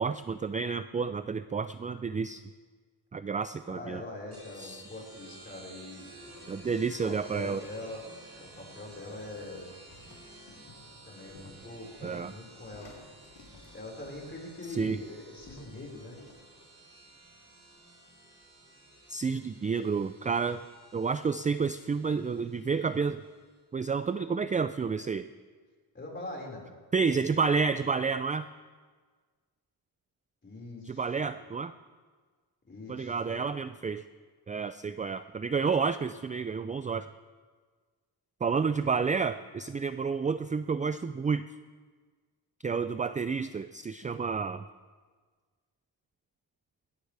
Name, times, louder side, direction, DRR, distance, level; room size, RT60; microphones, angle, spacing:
voice 1, 0.0-2.4 3.1-4.0 4.6-4.9 6.5-7.6 12.0-12.3 14.7-15.0 19.1-20.6 20.9-23.2 23.7-25.3 26.9-28.5 30.9-31.7 32.9-34.0 34.5-37.1 38.4-41.5 42.6-44.6, right 5 dB, 20° right, 12 dB, 0.3 m, -30 dB
voice 2, 3.7-6.6 7.0-8.0 8.3-9.7 11.1-12.9 13.7-16.2 25.9-26.7 30.4-31.3 32.7-33.5, left 2 dB, 25° left, -2 dB, 5.1 m, -43 dB
sound 1, 4.3-23.5, right 2 dB, 35° right, 6.5 m, -53 dB
sound 2, 8.9-16.4, left 3 dB, 75° left, 3.9 m, -56 dB
21.0 x 17.5 x 3.4 m, 1.5 s
cardioid pair, 95°, 43 cm